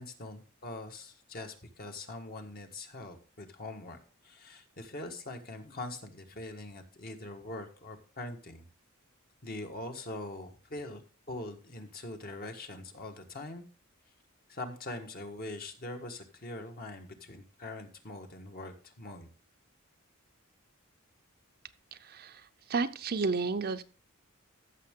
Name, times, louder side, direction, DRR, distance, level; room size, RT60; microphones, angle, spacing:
voice 1, 0.0-4.0 4.2-8.6 9.4-13.6 14.5-19.3, left 2 dB, 45° left, 4 dB, 1.5 m, -43 dB
voice 2, 22.7-23.8, right 4 dB, 50° right, 10 dB, 0.6 m, -31 dB
14.5 x 6.5 x 3.7 m, 0.37 s
head